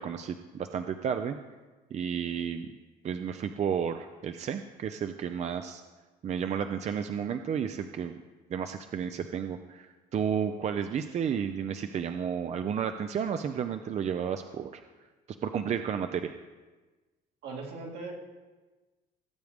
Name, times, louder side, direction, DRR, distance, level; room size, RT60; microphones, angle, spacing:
voice 1, 0.0-1.4 1.9-2.8 3.0-5.8 6.2-8.1 8.5-14.8 15.4-16.3, right 7 dB, 40° right, 8 dB, 0.5 m, -32 dB
voice 2, 17.4-18.1, right 3 dB, 75° right, -1 dB, 2.4 m, -39 dB
17.5 x 7.8 x 3.5 m, 1.2 s
cardioid pair, 110°, 17 cm